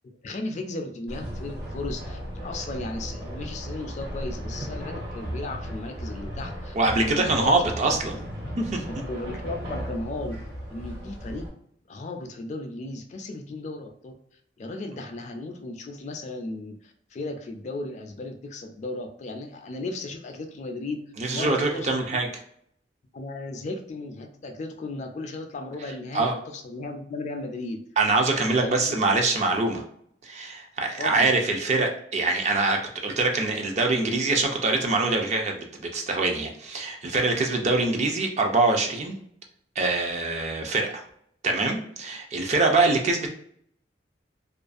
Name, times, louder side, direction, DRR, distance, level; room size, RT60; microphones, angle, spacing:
voice 1, 0.0-8.2 9.0-10.4 10.7-11.4 11.9-14.1 14.6-21.0 21.3-22.0 23.1-27.8 28.5-29.0 31.0-31.3, left 2 dB, 40° left, 4 dB, 0.3 m, -35 dB
sound 1, 1.1-11.5, equal, 65° right, 1.2 m, -36 dB
voice 2, 6.7-8.1 8.6-8.8 21.2-22.3 26.1-26.3 28.0-29.8 30.2-39.2 39.8-41.0 41.4-43.3, right 3 dB, 40° right, 2 dB, 0.4 m, -24 dB
2.4 x 2.3 x 2.4 m, 0.66 s
head